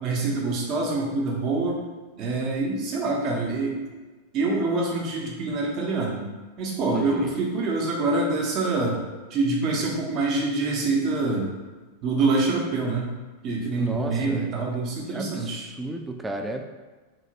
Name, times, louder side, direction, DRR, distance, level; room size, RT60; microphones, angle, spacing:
voice 1, 0.0-1.8 2.2-3.8 4.3-6.3 6.6-9.0 9.3-11.5 12.0-13.1 13.4-15.7, right 3 dB, 35° right, -1 dB, 0.7 m, -25 dB
voice 2, 6.9-7.3 13.8-14.5 15.1-16.6, right 1 dB, 10° right, 4 dB, 0.3 m, -33 dB
2.8 x 2.8 x 2.8 m, 1.3 s
figure-of-eight pair, 90°, 0 cm